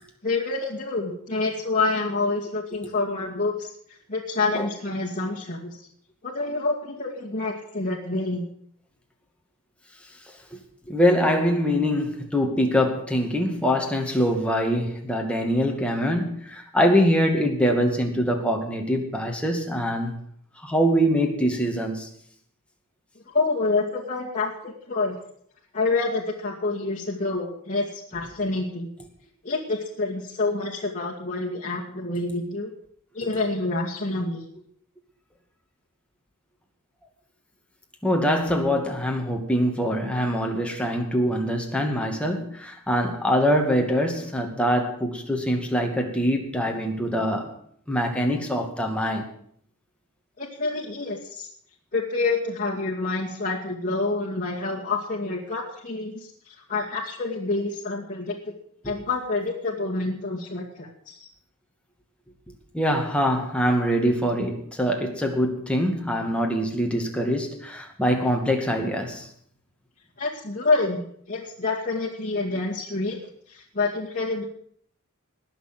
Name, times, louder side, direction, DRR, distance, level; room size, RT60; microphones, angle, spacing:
voice 1, 0.2-3.7 4.1-5.8 6.2-8.5 23.3-25.2 25.7-28.9 29.4-32.7 33.1-34.4 50.4-51.5 51.9-58.5 58.8-61.3 70.2-73.2 73.5-74.5, left 3 dB, 35° left, 2.3 m, -27 dB
voice 2, 10.9-20.1 20.6-22.1 38.0-47.5 47.9-49.3 58.8-58.9 62.7-69.3, equal, 5° left, 2.3 m, -24 dB
20.0 x 6.8 x 7.6 m
head